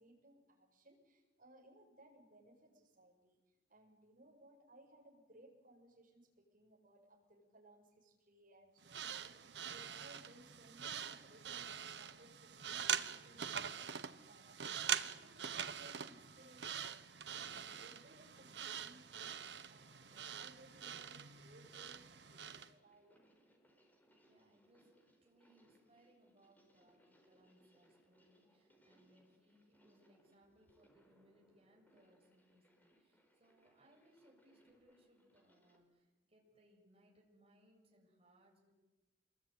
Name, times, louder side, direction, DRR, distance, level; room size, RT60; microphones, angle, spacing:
voice 1, 0.0-23.2 30.4-30.6, right 1 dB, 50° right, 1 dB, 7.1 m, -64 dB
sound 1, 8.8-22.7, right 8 dB, 70° right, 1.1 m, -44 dB
sound 2, 17.3-35.8, right 1 dB, 10° left, 4.5 m, -72 dB
voice 2, 24.2-38.7, right 1 dB, 35° right, -1 dB, 7.7 m, -70 dB
27.0 x 21.5 x 9.5 m, 1.1 s
head